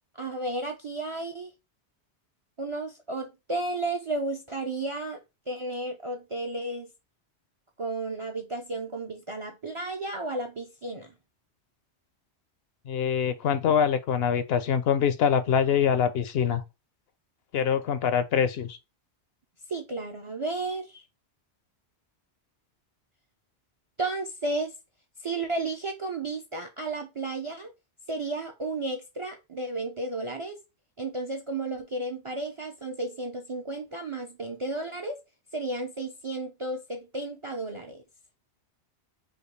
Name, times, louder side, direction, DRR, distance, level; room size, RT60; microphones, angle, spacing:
voice 1, 0.2-1.5 2.6-5.2 5.5-6.9 7.8-11.1 19.7-21.0 24.0-24.7 25.2-27.7 28.1-30.6 31.0-35.2 35.5-38.0, right 2 dB, 45° right, 0.4 m, -33 dB
voice 2, 12.9-16.6 17.5-18.8, left 8 dB, 70° left, 0.7 m, -24 dB
5.0 x 2.3 x 3.2 m
omnidirectional pair, 1.1 m